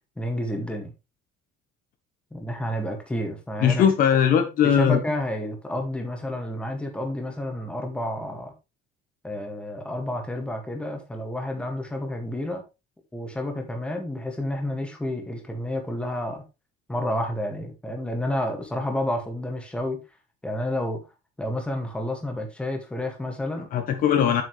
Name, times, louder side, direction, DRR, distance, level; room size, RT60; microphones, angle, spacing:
voice 1, 0.2-0.9 2.3-3.9 4.6-8.5 9.2-12.6 13.1-16.4 16.9-20.0 20.4-21.0 21.4-23.7, left 1 dB, 5° left, 2.0 m, -30 dB
voice 2, 3.6-5.0 23.7-24.4, left 8 dB, 50° left, 1.2 m, -20 dB
8.3 x 8.0 x 3.3 m
cardioid pair, 175°, 19 cm